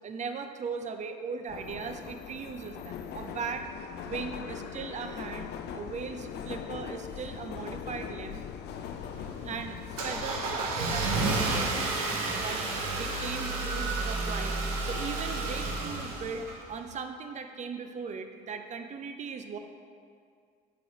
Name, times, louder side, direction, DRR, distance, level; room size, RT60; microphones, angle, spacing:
voice 1, 0.0-3.7 4.0-8.4 9.4-9.8 10.0-19.6, right 5 dB, 40° right, 7 dB, 0.6 m, -38 dB
Subway metro underground, 1.5-13.5, left 8 dB, 60° left, 0.5 m, -41 dB
Car / Engine starting, 8.7-16.9, right 3 dB, 85° right, 0.9 m, -31 dB
9.1 x 6.2 x 2.9 m, 2.2 s
hypercardioid pair, 60°, 19 cm